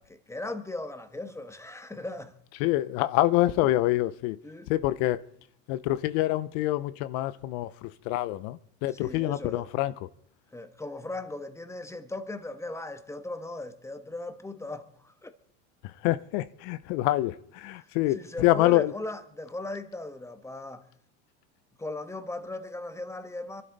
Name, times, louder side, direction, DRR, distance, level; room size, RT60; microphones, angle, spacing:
voice 1, 0.0-2.3 4.4-4.7 8.9-9.7 10.5-15.3 17.8-20.9 21.8-23.6, left 2 dB, 5° left, 1.3 m, -38 dB
voice 2, 2.6-4.4 4.7-5.2 5.7-10.1 15.8-18.9, left 16 dB, 75° left, 0.7 m, -26 dB
23.5 x 12.0 x 4.0 m
supercardioid pair, 110°, 37 cm